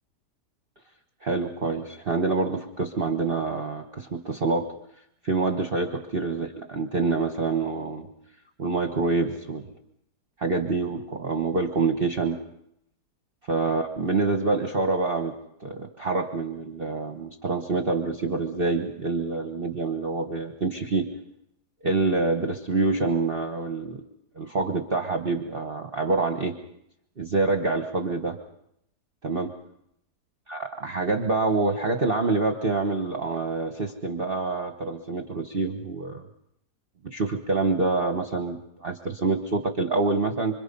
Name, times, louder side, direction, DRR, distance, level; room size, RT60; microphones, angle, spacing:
voice 1, 1.2-4.7 5.2-8.1 8.6-9.7 10.4-12.4 13.5-15.3 15.6-21.1 21.8-24.0 24.3-26.5 27.2-28.4 29.2-29.5 30.5-36.2 37.0-40.6, right 3 dB, 35° right, 4 dB, 1.4 m, -26 dB
26.5 x 26.0 x 5.4 m, 0.76 s
omnidirectional pair, 1.8 m